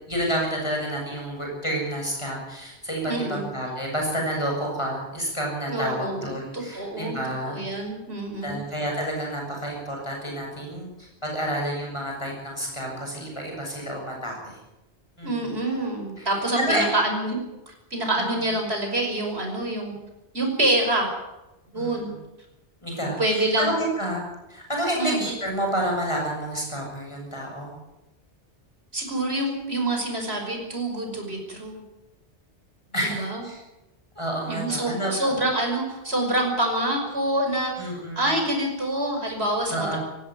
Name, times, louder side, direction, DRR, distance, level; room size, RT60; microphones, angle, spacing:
voice 1, 0.1-7.9 8.4-10.9 11.2-14.6 15.2-15.5 16.2-16.3 16.6-16.9 21.7-22.1 22.8-24.2 24.5-27.7 32.9-33.6 34.2-35.3 37.8-38.3 39.7-40.0, right 1 dB, 25° left, -1 dB, 7.1 m, -29 dB
voice 2, 3.0-3.4 5.7-7.2 7.4-8.6 15.2-17.4 17.7-19.9 20.3-21.1 21.7-22.1 23.2-23.7 25.0-25.2 28.9-31.8 33.0-33.4 34.5-40.0, right 1 dB, 65° right, 3 dB, 5.8 m, -26 dB
18.0 x 16.5 x 9.3 m, 0.97 s
omnidirectional pair, 1.1 m